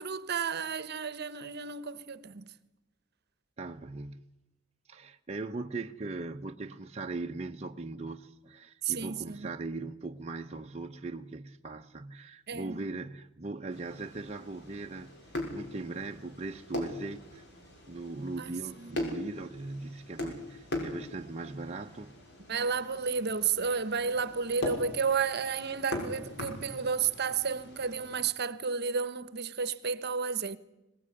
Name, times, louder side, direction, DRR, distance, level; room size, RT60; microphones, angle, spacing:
voice 1, 0.0-2.4 8.8-9.5 12.5-12.8 18.8-19.0 22.5-30.6, right 5 dB, 55° right, 1.1 m, -32 dB
voice 2, 3.6-4.3 4.9-15.1 15.5-17.4 17.9-22.2, right 3 dB, 30° right, 0.8 m, -39 dB
sound 1, 13.7-28.2, left 1 dB, 60° left, 6.0 m, -41 dB
23.0 x 19.0 x 9.9 m
head